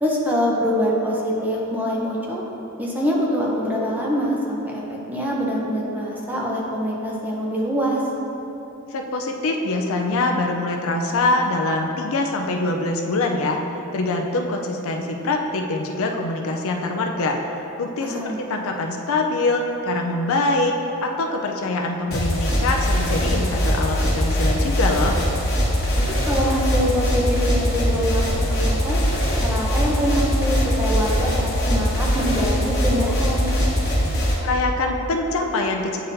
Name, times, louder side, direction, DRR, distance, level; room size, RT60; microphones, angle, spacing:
voice 1, 0.0-2.4 2.8-8.0 18.0-18.4 26.2-29.0 29.4-33.5, equal, 10° right, -4 dB, 0.7 m, -24 dB
voice 2, 8.9-13.6 13.9-17.4 17.8-20.7 21.0-25.2 34.4-36.0, left 2 dB, 65° left, 2 dB, 0.5 m, -24 dB
sound 1, 22.1-34.3, equal, 45° left, 1.2 m, -21 dB
9.0 x 4.0 x 2.6 m, 3.0 s
head